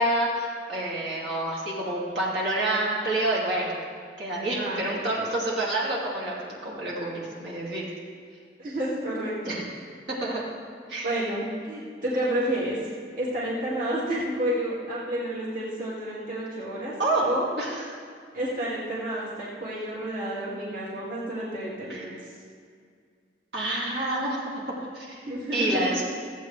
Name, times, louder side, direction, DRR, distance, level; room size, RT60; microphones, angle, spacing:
voice 1, 0.0-3.8 4.2-7.8 9.5-9.7 10.1-10.4 10.9-11.2 17.0-17.3 17.6-17.9 21.9-22.1 23.5-24.5 24.9-25.2 25.5-26.0, right 1 dB, 75° right, -6 dB, 2.6 m, -28 dB
voice 2, 4.5-5.3 8.6-9.6 11.0-12.8 13.2-16.9 17.2-17.5 18.3-22.1 25.2-25.9, right 1 dB, 50° right, -7 dB, 2.2 m, -30 dB
15.0 x 8.3 x 3.3 m, 2.1 s
head